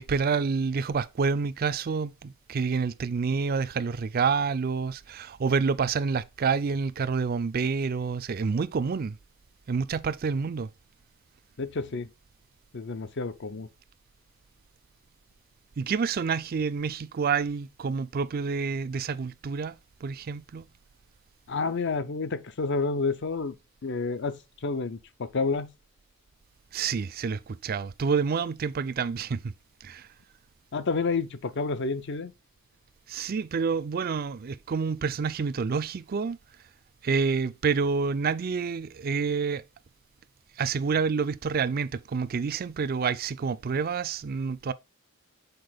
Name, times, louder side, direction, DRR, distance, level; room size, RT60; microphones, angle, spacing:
voice 1, 0.0-9.2 9.7-10.7 15.8-20.7 26.7-29.5 29.8-30.1 33.1-36.4 37.0-39.6 40.6-44.7, right 5 dB, 45° right, 0.4 m, -28 dB
voice 2, 11.6-12.1 12.7-13.7 21.5-23.6 23.8-25.7 30.7-32.3, left 4 dB, 55° left, 0.6 m, -29 dB
6.7 x 4.3 x 3.9 m
head